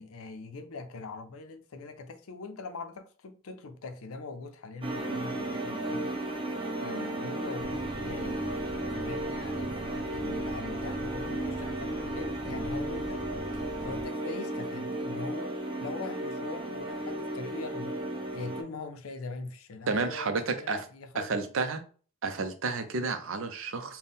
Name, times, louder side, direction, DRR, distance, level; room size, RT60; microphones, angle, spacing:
voice 1, 0.0-6.2 6.8-13.3 13.5-15.5 15.8-17.9 18.3-21.5, left 3 dB, 75° left, 0.5 m, -42 dB
sound 1, 4.8-18.6, right 1 dB, 25° right, 0.9 m, -34 dB
sound 2, 7.6-14.0, equal, 15° left, 0.7 m, -43 dB
voice 2, 19.9-20.8 21.2-21.8 22.2-24.0, right 4 dB, 65° right, 0.6 m, -31 dB
4.1 x 2.2 x 3.6 m
head